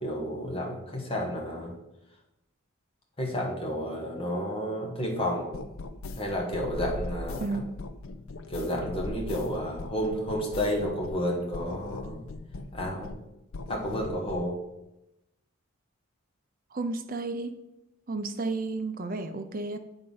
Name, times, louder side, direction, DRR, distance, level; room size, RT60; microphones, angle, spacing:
voice 1, 0.0-1.7 3.2-5.5 6.1-7.6 8.5-12.2 12.7-13.1 13.7-14.6, equal, 25° left, -1 dB, 1.3 m, -31 dB
sound 1, 5.5-11.3 11.5-13.3 13.5-14.5, left 2 dB, 70° left, 0.5 m, -39 dB
voice 2, 16.7-17.6 18.1-19.8, right 3 dB, 40° right, 8 dB, 0.6 m, -32 dB
8.3 x 3.9 x 5.5 m, 0.94 s
head